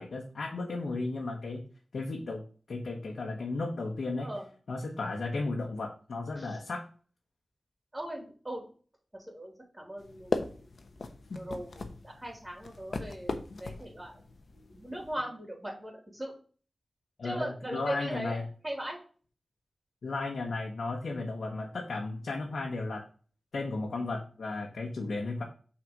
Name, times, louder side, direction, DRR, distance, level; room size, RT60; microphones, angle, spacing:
voice 1, 0.0-1.6 1.9-4.3 4.7-6.8 11.3-11.4 13.5-13.6 17.2-18.4 20.0-23.0 23.5-25.4, left 3 dB, 85° left, 0 dB, 1.2 m, -34 dB
voice 2, 7.9-8.6 9.3-14.3 14.5-16.3 17.2-19.0, right 1 dB, 20° right, 0 dB, 3.4 m, -40 dB
sound 1, 10.0-15.2, left 3 dB, 70° left, 1.0 m, -38 dB
6.0 x 4.3 x 5.2 m, 0.40 s
wide cardioid pair, 70°, 0 cm